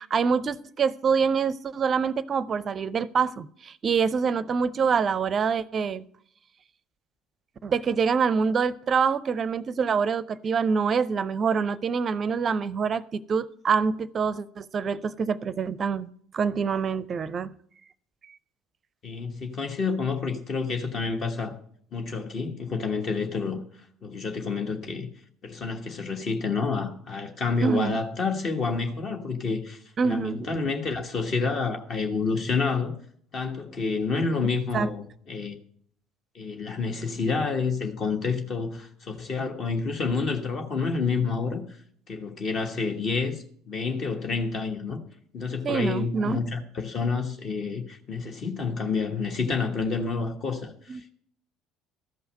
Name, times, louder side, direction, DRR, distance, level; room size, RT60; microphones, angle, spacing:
voice 1, 0.0-6.0 7.6-16.1 16.3-17.5 27.6-28.0 30.0-30.5 34.7-34.9 45.6-46.4 50.9-51.0, right 6 dB, 35° right, 0.5 m, -25 dB
voice 2, 19.0-21.5 21.9-23.6 24.0-25.1 25.4-32.9 33.3-35.5 36.3-41.6 42.1-45.0 45.3-51.1, left 4 dB, 40° left, 1.3 m, -29 dB
13.5 x 5.6 x 7.5 m
figure-of-eight pair, 55°, 0 cm